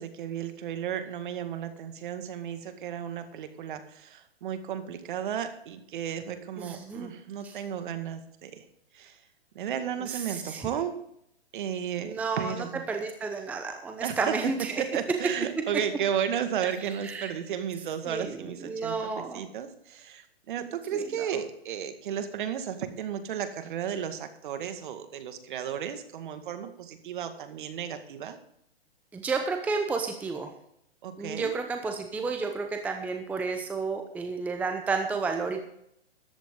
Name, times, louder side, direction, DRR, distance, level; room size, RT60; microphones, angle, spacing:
voice 1, 0.0-8.7 8.9-9.2 9.6-11.0 11.5-12.8 14.0-14.4 14.8-28.4 31.0-31.5, right 9 dB, 50° right, 8 dB, 1.9 m, -34 dB
voice 2, 6.6-7.1 7.4-7.5 10.3-10.7 12.0-12.5 12.9-14.8 17.0-17.3 18.1-18.4 18.6-19.4 20.9-21.0 29.1-30.5 31.2-35.6, right 4 dB, 5° right, 5 dB, 0.8 m, -31 dB
14.0 x 11.5 x 3.8 m, 0.72 s
hypercardioid pair, 140°, 32 cm